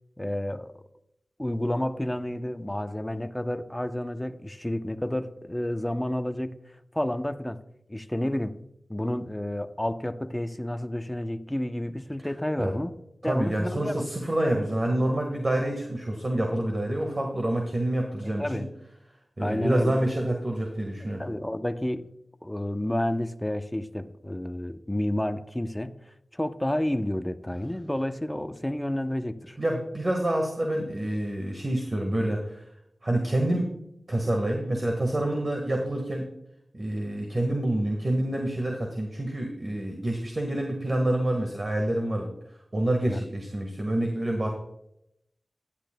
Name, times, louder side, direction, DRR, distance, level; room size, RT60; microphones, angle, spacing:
voice 1, 0.2-0.8 1.4-6.6 6.9-7.6 7.9-8.6 8.9-13.0 13.2-14.1 18.2-18.7 19.4-20.0 21.2-22.1 22.4-26.0 26.3-29.6 43.1-43.2, left 1 dB, 15° left, 0.8 m, -30 dB
voice 2, 13.2-18.6 19.4-21.2 29.6-32.6 33.0-33.7 34.1-36.3 36.7-42.3 42.7-44.5, right 1 dB, 40° right, 1.6 m, -27 dB
15.5 x 10.0 x 2.3 m
cardioid pair, 45°, 0 cm